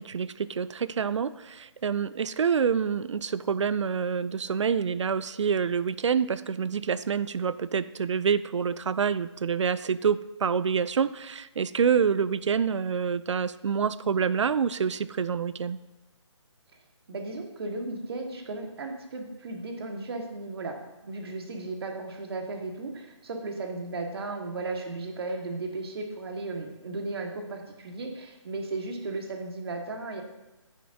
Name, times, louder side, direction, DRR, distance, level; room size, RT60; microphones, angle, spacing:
voice 1, 0.0-15.8, right 6 dB, 70° right, 16 dB, 0.4 m, -27 dB
voice 2, 17.1-20.8 21.0-30.2, right 3 dB, 55° right, 3 dB, 1.7 m, -35 dB
9.4 x 9.2 x 2.7 m, 1.1 s
figure-of-eight pair, 150°, 16 cm